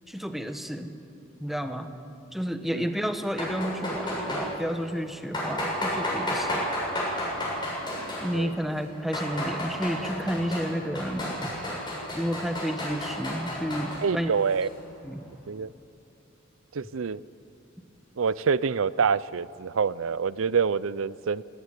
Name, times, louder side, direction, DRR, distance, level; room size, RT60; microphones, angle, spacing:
voice 1, 0.1-0.9 1.4-2.0 2.3-6.7 8.0-11.5 12.1-14.3 15.0-15.2, equal, ahead, 7 dB, 1.1 m, -31 dB
sound 1, 3.3-4.5 5.3-8.4 8.9-10.7 10.9-14.0, left 1 dB, 25° left, 7.4 m, -31 dB
voice 2, 14.0-14.7 15.5-15.7 16.7-17.2 18.2-21.4, right 6 dB, 80° right, 19 dB, 0.5 m, -26 dB
18.5 x 17.5 x 9.7 m, 2.8 s
head